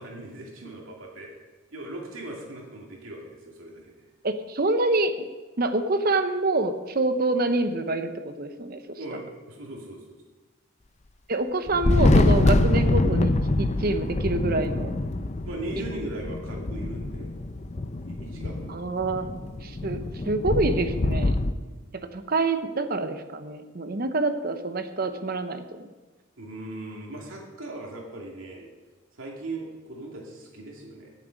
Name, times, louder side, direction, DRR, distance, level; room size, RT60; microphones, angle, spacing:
voice 1, 0.0-1.4 1.7-4.1 8.9-10.1 15.4-17.3 18.0-18.8 21.6-21.8 26.4-28.7 29.1-31.1, right 2 dB, 85° right, -2 dB, 2.3 m, -39 dB
voice 2, 4.2-5.3 5.6-9.2 11.3-14.9 15.8-15.9 18.7-19.3 19.6-21.4 21.9-25.9, right 2 dB, 45° right, 9 dB, 0.8 m, -26 dB
Thunder, 11.7-21.5, left 2 dB, 35° left, 0.5 m, -24 dB
16.5 x 7.4 x 5.2 m, 1.3 s
head